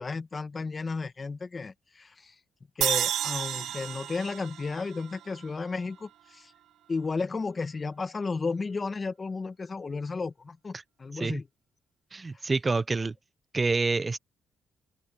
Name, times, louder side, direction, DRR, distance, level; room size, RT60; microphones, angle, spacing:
voice 1, 0.0-2.3 2.7-6.5 6.9-11.4 12.3-12.4, left 4 dB, 30° left, 1.7 m, -33 dB
sound 1, 2.8-6.1, right 11 dB, 75° right, 1.1 m, -32 dB
voice 2, 12.1-13.1 13.5-14.2, right 3 dB, 25° right, 0.6 m, -27 dB
open air
cardioid pair, 90°, 0 cm